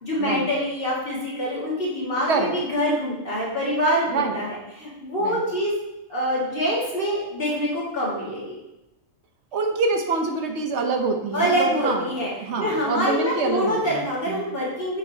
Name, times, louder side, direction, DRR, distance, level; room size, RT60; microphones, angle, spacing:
voice 1, 0.0-5.8 6.1-8.6 11.3-12.3 12.6-15.0, equal, 45° left, -6 dB, 2.1 m, -25 dB
voice 2, 9.5-12.1 12.4-14.0 14.3-14.5, right 3 dB, 60° right, 4 dB, 1.0 m, -25 dB
7.2 x 6.5 x 2.8 m, 0.95 s
omnidirectional pair, 1.4 m